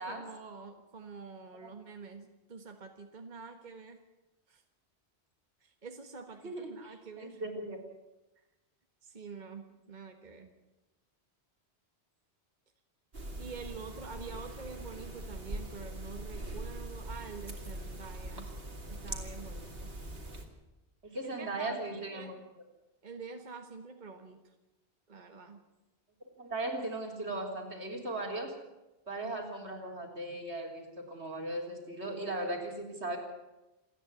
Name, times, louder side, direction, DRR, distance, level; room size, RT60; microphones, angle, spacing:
voice 1, 0.0-4.0 4.5-4.6 5.6-7.4 9.0-10.5 13.4-18.5 18.9-19.9 21.2-22.4 23.0-24.5 25.1-25.6, right 4 dB, 45° right, 5 dB, 1.6 m, -47 dB
voice 2, 6.4-7.8 21.0-22.4 26.4-28.5 29.1-33.2, right 2 dB, 80° right, 1 dB, 4.2 m, -38 dB
sound 1, 13.1-20.5, right 1 dB, 60° right, 3.0 m, -42 dB
28.0 x 10.0 x 9.8 m, 1.0 s
omnidirectional pair, 1.1 m